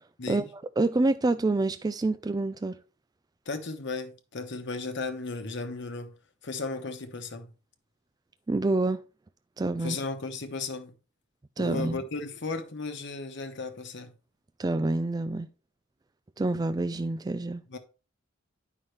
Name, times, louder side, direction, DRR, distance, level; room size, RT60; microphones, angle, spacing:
voice 1, 0.2-0.5 3.5-6.1 6.4-7.5 9.8-10.9 11.6-14.1 17.7-17.8, left 3 dB, 60° left, 1.1 m, -35 dB
voice 2, 0.8-2.8 8.5-9.0 9.6-10.0 11.6-12.0 14.6-15.5 16.4-17.6, right 2 dB, 20° right, 0.3 m, -27 dB
9.5 x 5.5 x 3.3 m
head